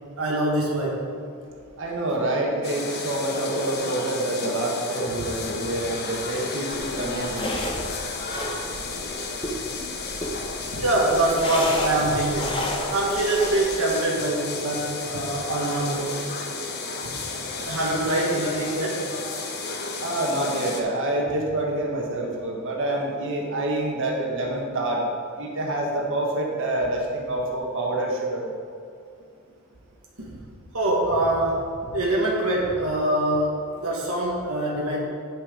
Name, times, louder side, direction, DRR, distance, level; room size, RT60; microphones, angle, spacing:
voice 1, 0.2-1.0 10.7-12.6 12.9-16.2 17.7-19.0 30.2-30.3 30.7-35.0, right 1 dB, 80° right, -3 dB, 1.4 m, -24 dB
voice 2, 1.8-7.5 20.0-25.0 25.3-28.5, right 1 dB, 60° right, -1 dB, 1.5 m, -27 dB
sound 1, 2.6-20.8, left 3 dB, 50° left, 1.0 m, -32 dB
sound 2, 6.7-13.6, left 1 dB, 25° left, 1.1 m, -33 dB
9.1 x 6.3 x 5.1 m, 2.4 s
head